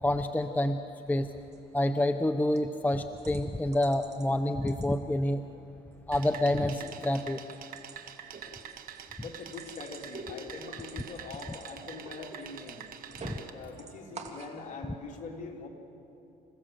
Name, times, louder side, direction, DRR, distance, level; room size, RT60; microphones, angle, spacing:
voice 1, 0.0-0.8 1.1-1.3 1.7-5.4 6.1-7.4 13.2-13.4, left 1 dB, 10° left, 8 dB, 0.7 m, -28 dB
sound 1, 1.5-1.6 2.0-2.2 2.6-2.7 3.2-4.3 4.6-5.3 5.7-6.3 6.5-13.5 13.7-14.5, right 3 dB, 40° right, 2.5 m, -48 dB
sound 2, 6.1-13.5, right 9 dB, 60° right, 1.4 m, -46 dB
voice 2, 9.2-12.8 13.5-15.7, left 4 dB, 50° left, 0 dB, 3.3 m, -43 dB
27.5 x 16.0 x 7.8 m, 3.0 s
cardioid pair, 110°, 17 cm